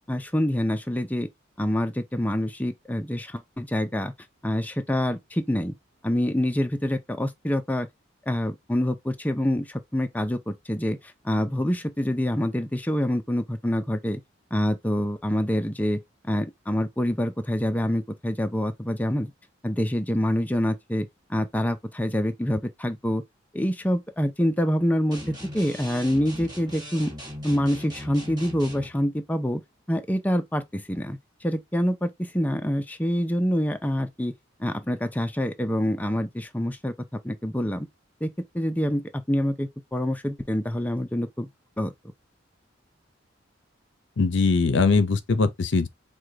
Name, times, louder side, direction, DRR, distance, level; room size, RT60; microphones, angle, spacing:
voice 1, 0.1-1.3 1.6-4.1 4.4-5.7 6.0-7.9 8.3-14.2 14.5-19.3 19.6-23.2 23.5-27.1 27.4-29.6 29.9-34.3 34.6-36.9 37.2-37.9 38.2-41.5 41.8-41.9, equal, 10° left, 0.5 m, -26 dB
sound 1, 25.1-28.9, equal, 20° right, 1.4 m, -39 dB
voice 2, 44.2-45.9, left 4 dB, 65° left, 0.6 m, -21 dB
4.8 x 2.3 x 3.8 m
head